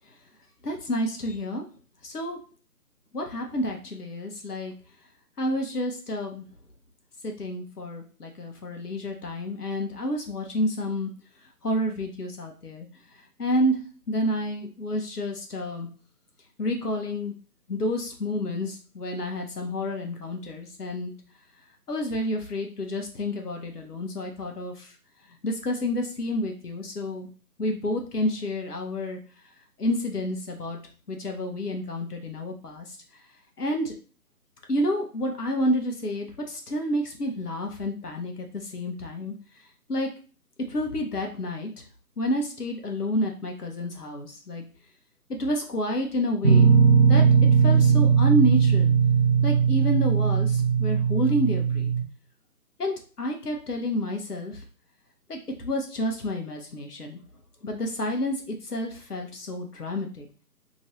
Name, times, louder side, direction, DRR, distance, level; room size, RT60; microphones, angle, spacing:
voice 1, 0.6-1.6 2.0-2.4 3.1-4.7 5.4-6.4 7.2-11.1 11.6-12.9 13.4-13.8 14.1-15.9 16.6-17.3 17.7-21.1 21.9-24.9 25.4-27.3 27.6-29.2 29.8-30.8 31.1-32.9 33.6-33.9 34.7-39.3 39.9-40.1 40.7-41.7 42.2-44.6 45.4-46.7 47.1-47.2 47.6-48.9 49.4-51.9 52.8-54.6 55.3-57.2 57.6-60.3, left 1 dB, 70° left, 3 dB, 1.0 m, -29 dB
sound 1, 46.4-52.0, right 6 dB, 35° right, 0.7 m, -19 dB
3.0 x 2.7 x 2.8 m, 0.38 s
figure-of-eight pair, 150°, 47 cm